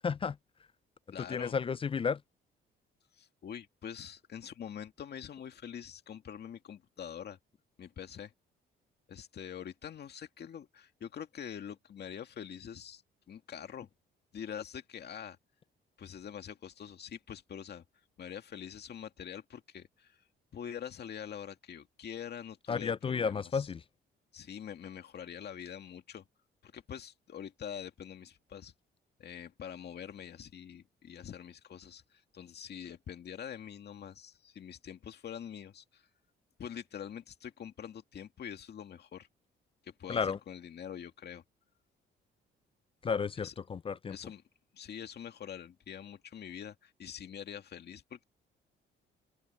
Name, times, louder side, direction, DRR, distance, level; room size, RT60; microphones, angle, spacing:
voice 1, 0.0-0.4 1.2-2.2 22.7-23.8 40.1-40.4 43.0-44.2, left 6 dB, 30° left, 0.4 m, -32 dB
voice 2, 1.1-1.6 3.1-7.4 7.8-8.3 9.1-13.0 13.3-13.9 14.3-15.4 16.0-17.8 18.2-20.2 20.5-23.7 24.3-26.2 26.6-28.7 29.2-36.1 36.6-39.3 39.8-41.4 43.4-43.5 44.1-44.4 44.7-48.2, left 8 dB, 55° left, 2.1 m, -45 dB
open air
cardioid pair, 90°, 20 cm